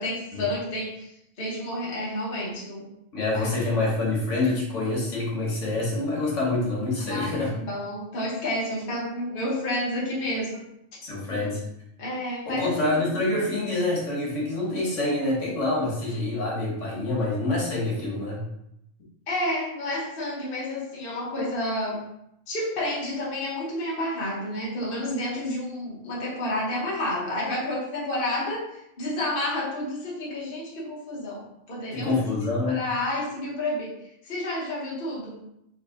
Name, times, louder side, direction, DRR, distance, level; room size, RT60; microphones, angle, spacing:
voice 1, 0.0-3.5 7.1-10.7 11.3-11.5 12.0-13.0 19.3-22.0 22.5-32.2 32.7-35.5, left 1 dB, 50° left, -5 dB, 1.1 m, -30 dB
voice 2, 3.1-7.5 11.0-11.6 12.5-18.4 31.9-32.8, left 2 dB, 75° left, -5 dB, 1.6 m, -26 dB
4.0 x 2.6 x 3.7 m, 0.80 s
omnidirectional pair, 1.3 m